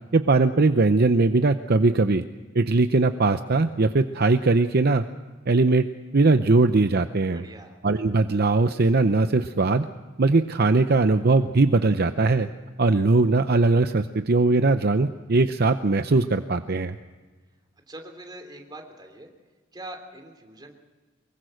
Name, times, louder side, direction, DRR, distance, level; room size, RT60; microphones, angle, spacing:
voice 1, 0.1-2.2 2.5-5.0 5.5-5.9 6.1-7.4 7.8-9.9 10.2-12.5 12.8-17.0, right 3 dB, 50° right, 9 dB, 0.7 m, -20 dB
voice 2, 7.3-7.8 17.9-19.3 19.7-20.7, right 1 dB, 20° right, 4 dB, 3.3 m, -42 dB
24.0 x 22.5 x 6.4 m, 1.3 s
head